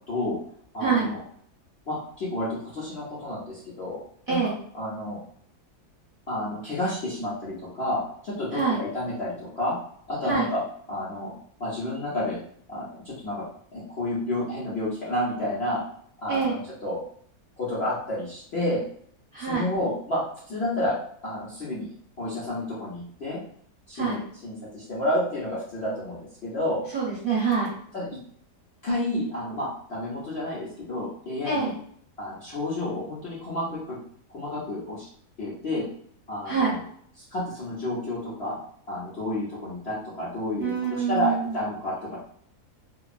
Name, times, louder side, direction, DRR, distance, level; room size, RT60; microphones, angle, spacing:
voice 1, 0.1-0.4 0.7-1.2 1.9-4.0 4.3-5.2 6.3-9.7 10.1-10.6 10.9-11.3 11.6-12.4 12.7-13.4 13.7-15.8 16.2-17.0 17.6-18.8 19.4-20.2 20.5-21.0 21.2-21.9 22.2-23.4 23.9-26.8 27.9-28.1 28.8-31.7 32.2-34.0 34.3-35.1 35.4-35.8 36.3-36.8 37.2-38.6 38.9-42.2, left 1 dB, 50° left, -9 dB, 0.8 m, -30 dB
voice 2, 4.3-4.6 8.5-8.8 10.3-10.5 16.3-16.6 19.3-19.7 23.9-24.2 26.9-27.7 31.4-31.7 36.4-36.7 40.6-41.5, right 5 dB, 35° right, -8 dB, 1.2 m, -25 dB
2.9 x 2.2 x 2.4 m, 0.62 s
omnidirectional pair, 1.7 m